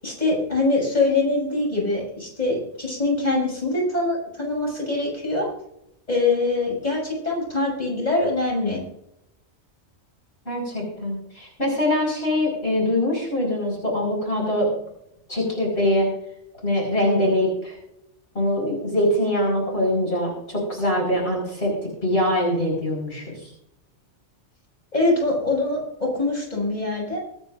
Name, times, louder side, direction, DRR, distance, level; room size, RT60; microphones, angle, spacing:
voice 1, 0.0-5.5 6.1-8.8 24.9-27.2, left 2 dB, 35° left, -3 dB, 6.4 m, -23 dB
voice 2, 10.5-14.7 15.3-16.1 16.6-17.8 18.4-21.7 22.0-23.5, left 1 dB, 60° left, -2 dB, 5.3 m, -23 dB
24.5 x 9.8 x 2.6 m, 0.78 s
omnidirectional pair, 1.2 m